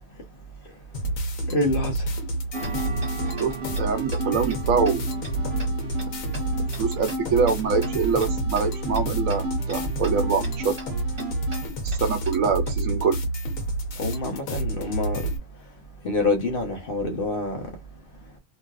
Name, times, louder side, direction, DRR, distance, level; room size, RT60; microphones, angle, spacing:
sound 1, 0.9-15.4, right 1 dB, 85° left, 1.2 m, -29 dB
voice 1, 1.5-2.0 14.0-15.2 16.0-17.6, left 2 dB, 45° left, 0.9 m, -26 dB
Tick-tock, 2.5-12.7, right 2 dB, 30° right, 1.5 m, -40 dB
sound 2, 2.5-11.7, right 1 dB, 55° right, 1.0 m, -35 dB
voice 2, 3.4-5.1 6.8-10.8 11.8-13.2, right 5 dB, 85° right, 1.1 m, -24 dB
3.1 x 2.5 x 2.3 m
omnidirectional pair, 1.4 m